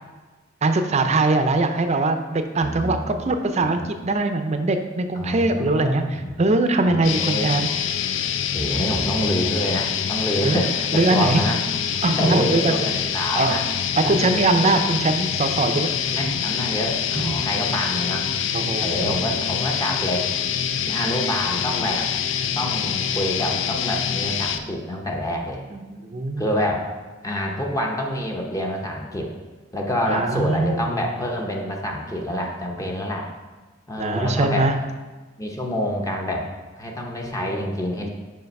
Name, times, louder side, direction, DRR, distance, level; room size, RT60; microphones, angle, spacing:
voice 1, 0.6-7.7 10.4-10.6 10.9-11.4 12.0-12.7 13.4-13.6 14.0-15.9 17.2-17.4 18.5-19.2 25.7-26.5 30.1-31.1 34.0-34.8 37.4-37.5, right 2 dB, 35° right, 7 dB, 0.5 m, -22 dB
voice 2, 2.6-3.2 3.6-3.7 5.2-6.3 6.9-7.5 8.5-11.6 12.0-13.6 14.0-14.8 16.1-18.3 18.8-20.3 20.9-22.1 22.5-25.6 26.4-26.9 27.2-29.3 29.7-33.3 33.9-34.7 35.4-36.5 36.8-38.1, left 1 dB, 20° left, 0 dB, 0.7 m, -27 dB
sound 1, 7.0-24.6, left 8 dB, 75° left, 0.4 m, -25 dB
5.7 x 4.9 x 5.3 m, 1.3 s
head